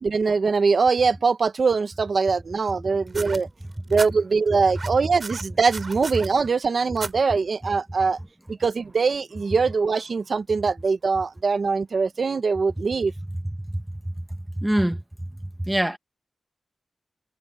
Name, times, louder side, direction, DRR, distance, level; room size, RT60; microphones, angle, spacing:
voice 1, 0.0-3.5 3.9-8.2 8.5-13.1, right 4 dB, 50° right, 1.3 m, -22 dB
sound 1, 3.1-4.1 4.7-6.3 7.0-7.1 8.1-8.2, right 3 dB, 35° right, 4.1 m, -35 dB
voice 2, 13.7-14.1 14.6-15.0 15.6-16.0, right 1 dB, 5° right, 1.5 m, -24 dB
wide cardioid pair, 160°, 0 cm